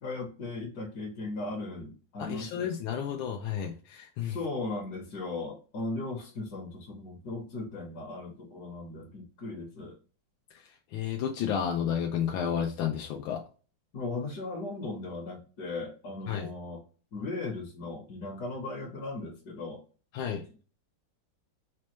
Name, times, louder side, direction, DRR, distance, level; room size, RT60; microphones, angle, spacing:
voice 1, 0.0-2.7 4.3-10.0 13.9-16.8 17.1-19.8, left 3 dB, 60° left, -2 dB, 1.4 m, -37 dB
voice 2, 2.2-4.4 10.5-13.4 16.3-16.5 20.1-20.5, left 8 dB, 85° left, 2 dB, 1.4 m, -32 dB
5.1 x 2.2 x 3.0 m, 0.36 s
omnidirectional pair, 2.1 m